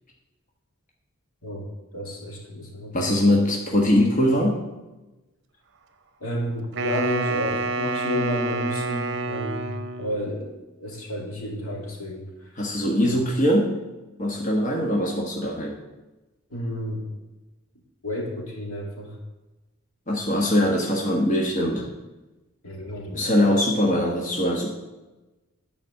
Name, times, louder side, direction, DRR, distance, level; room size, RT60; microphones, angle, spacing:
voice 1, 1.9-3.2 6.2-9.7 10.0-12.3 12.9-13.0 16.5-17.1 18.0-19.2 22.6-23.2, equal, 80° left, 0 dB, 2.4 m, -31 dB
voice 2, 2.9-4.6 12.6-13.8 14.2-15.8 20.1-21.8 23.1-24.7, left 1 dB, 35° left, -1 dB, 1.3 m, -22 dB
Wind instrument woodwind instrument, 6.7-10.2, right 3 dB, 55° right, 0.7 m, -28 dB
9.8 x 5.2 x 7.8 m, 1.1 s
head